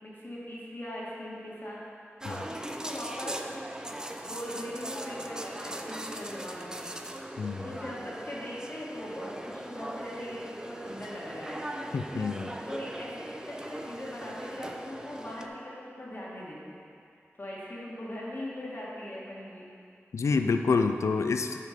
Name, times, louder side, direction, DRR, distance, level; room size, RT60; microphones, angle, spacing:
voice 1, 0.0-1.8 2.0-3.5 3.8-11.6 12.6-16.8 17.4-19.7, equal, 45° left, -6 dB, 1.6 m, -40 dB
sound 1, 2.2-15.5, right 1 dB, 15° right, 0.5 m, -40 dB
voice 2, 11.9-12.6 20.1-21.6, left 4 dB, 90° left, 7 dB, 0.3 m, -27 dB
6.6 x 5.1 x 5.0 m, 2.4 s
wide cardioid pair, 55°, 5 cm